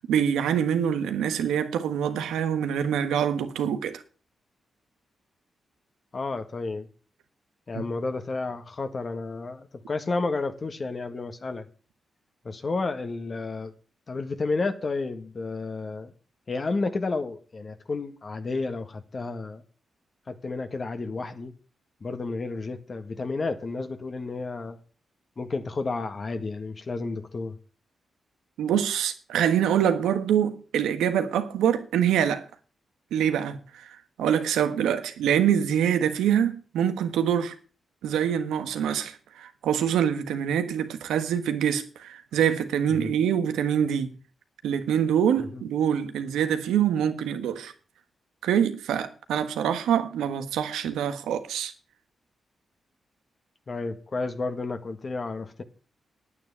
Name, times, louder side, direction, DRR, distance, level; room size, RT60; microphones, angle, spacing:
voice 1, 0.0-4.0 7.7-7.8 28.6-32.4 33.1-37.5 38.0-44.1 44.6-47.7 48.4-51.7, right 9 dB, 90° right, 1.3 m, -25 dB
voice 2, 6.1-6.9 7.7-11.7 12.4-13.7 14.1-16.1 16.5-19.6 20.3-21.5 22.0-24.8 25.4-27.6 42.9-43.1 45.5-45.6 53.7-55.6, left 3 dB, 45° left, 1.7 m, -31 dB
9.6 x 9.0 x 7.3 m
supercardioid pair, 55°, 0 cm